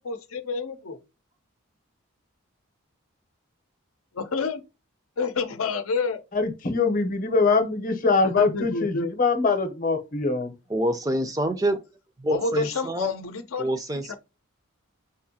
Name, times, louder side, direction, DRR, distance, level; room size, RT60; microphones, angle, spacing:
voice 1, 0.0-1.0 4.1-4.6 5.2-6.2 8.2-9.1 12.3-13.7 14.1-14.2, left 4 dB, 85° left, 0.6 m, -28 dB
voice 2, 6.3-10.5, left 4 dB, 40° left, 0.7 m, -23 dB
voice 3, 10.7-11.8 12.2-13.1 13.6-14.1, right 1 dB, 15° right, 0.4 m, -26 dB
4.8 x 2.6 x 2.7 m
head